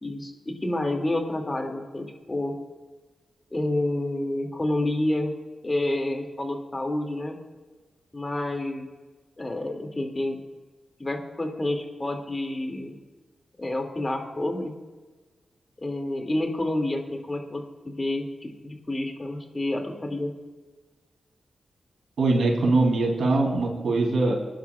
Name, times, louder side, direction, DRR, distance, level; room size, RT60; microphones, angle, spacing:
voice 1, 0.0-2.5 3.5-5.3 5.6-7.4 8.1-8.9 9.4-10.4 11.0-12.9 13.6-14.7 15.8-20.3, left 1 dB, 30° left, 3 dB, 2.3 m, -29 dB
voice 2, 22.2-24.3, right 2 dB, 80° right, 1 dB, 2.9 m, -22 dB
21.5 x 10.5 x 2.4 m, 1.3 s
cardioid pair, 45°, 0 cm